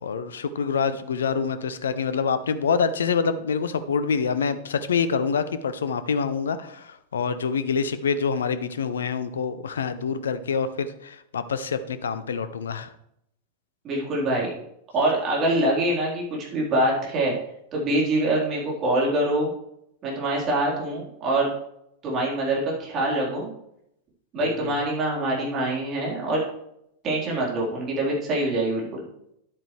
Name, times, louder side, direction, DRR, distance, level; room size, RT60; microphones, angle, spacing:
voice 1, 0.0-12.9 24.6-24.7, left 6 dB, 65° left, 12 dB, 0.6 m, -26 dB
voice 2, 13.8-14.5 14.9-17.3 17.7-19.5 20.0-21.5 22.0-23.5 24.3-26.4 27.0-29.1, right 1 dB, 30° right, -3 dB, 3.9 m, -24 dB
10.5 x 8.7 x 3.3 m, 0.77 s
figure-of-eight pair, 90°, 0 cm